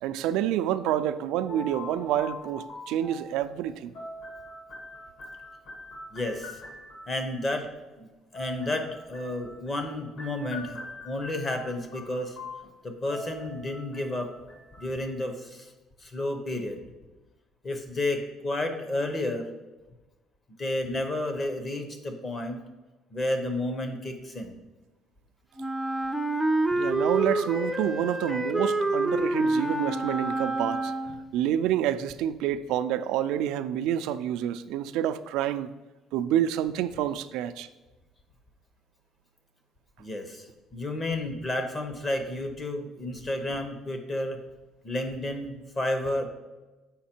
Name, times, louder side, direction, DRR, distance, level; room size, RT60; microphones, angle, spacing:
voice 1, 0.0-3.9 26.7-30.9 31.3-35.7 36.1-37.7, right 11 dB, 85° right, 0.3 m, -28 dB
sound 1, 1.5-7.3 8.3-15.2, left 2 dB, 50° left, 1.6 m, -43 dB
voice 2, 6.1-6.6 7.1-7.7 8.0-12.4 12.6-14.3 14.8-15.7 16.0-16.8 17.6-19.5 20.6-22.6 23.1-24.5 40.0-44.4 44.8-46.3, left 1 dB, 20° left, 0.8 m, -31 dB
Wind instrument woodwind instrument, 25.6-31.4, right 2 dB, 5° right, 0.3 m, -27 dB
7.2 x 5.0 x 4.4 m
cardioid pair, 170°, 0 cm